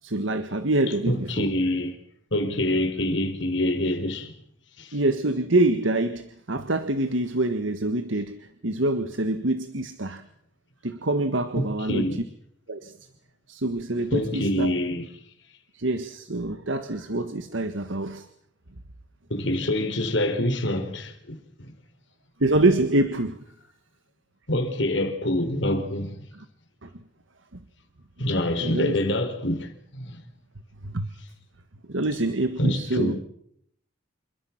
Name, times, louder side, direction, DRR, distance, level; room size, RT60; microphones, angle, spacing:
voice 1, 0.0-1.5 4.9-10.2 10.8-12.2 12.7-12.9 13.5-14.7 15.7-18.3 22.4-23.4 26.3-26.4 26.8-26.9 28.6-29.0 30.8-31.1 31.9-33.2, right 2 dB, 90° right, 1.7 m, -26 dB
voice 2, 1.1-2.0 2.3-4.3 4.8-5.0 11.6-12.2 14.1-15.1 19.3-21.7 24.5-26.2 28.2-30.2 32.6-33.2, left 1 dB, 70° left, 4.2 m, -26 dB
28.5 x 23.0 x 6.0 m
head